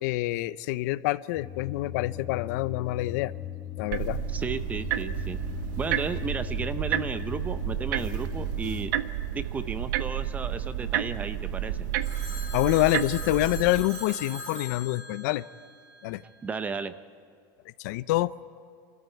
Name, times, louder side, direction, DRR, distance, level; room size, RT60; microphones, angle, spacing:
voice 1, 0.0-3.3 3.8-4.2 12.5-15.4 16.0-16.2 17.8-18.3, left 17 dB, 60° left, 17 dB, 0.6 m, -26 dB
sound 1, 1.3-8.9, left 12 dB, 15° left, 1.4 m, -39 dB
sound 2, 3.9-13.8, right 11 dB, 75° right, 0.8 m, -31 dB
voice 2, 4.3-5.4 5.8-8.9 9.3-11.9 16.4-16.9, right 5 dB, 15° right, 12 dB, 0.6 m, -34 dB
Telephone, 12.0-16.3, equal, 35° right, 3.8 m, -41 dB
27.0 x 13.5 x 9.1 m, 2.3 s
supercardioid pair, 160°, 10 cm